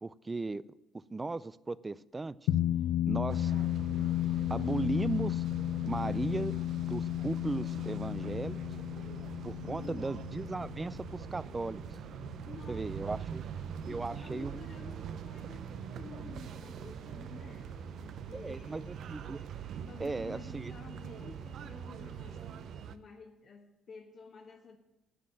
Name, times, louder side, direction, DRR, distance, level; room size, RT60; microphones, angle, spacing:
voice 1, 0.0-0.6 0.9-2.4 3.1-3.5 4.5-5.4 5.8-6.5 6.9-8.6 9.4-11.8 12.7-13.4 13.9-14.6 18.3-19.4 20.0-20.7, right 3 dB, 25° right, 19 dB, 0.4 m, -36 dB
sound 1, 2.5-13.2, left 13 dB, 85° left, 0.4 m, -34 dB
sound 2, 3.3-23.0, right 8 dB, 65° right, 0.6 m, -43 dB
voice 2, 9.6-10.1 12.4-13.2 13.8-19.0 19.9-24.8, left 5 dB, 55° left, 0 dB, 1.3 m, -51 dB
10.0 x 7.6 x 7.5 m, 0.95 s
supercardioid pair, 75°, 0 cm